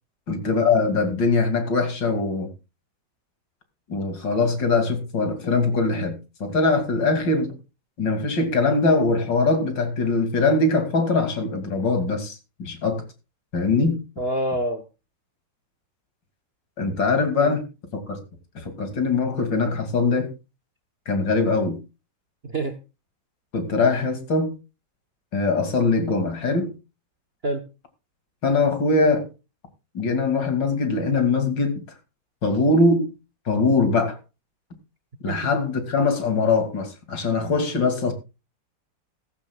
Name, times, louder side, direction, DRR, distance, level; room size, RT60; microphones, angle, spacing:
voice 1, 0.3-2.5 3.9-7.5 8.0-13.0 13.5-14.0 16.8-17.6 17.9-18.2 18.5-20.3 21.1-21.8 23.5-24.5 25.3-26.7 28.4-29.3 29.9-31.8 32.4-33.1 33.5-34.2 35.2-38.1, left 3 dB, 65° left, 3.2 m, -22 dB
voice 2, 14.2-14.8 17.4-17.6 22.4-22.8 27.4-27.6 35.3-35.4, right 1 dB, 35° right, 1.2 m, -26 dB
15.5 x 15.0 x 2.3 m
omnidirectional pair, 2.2 m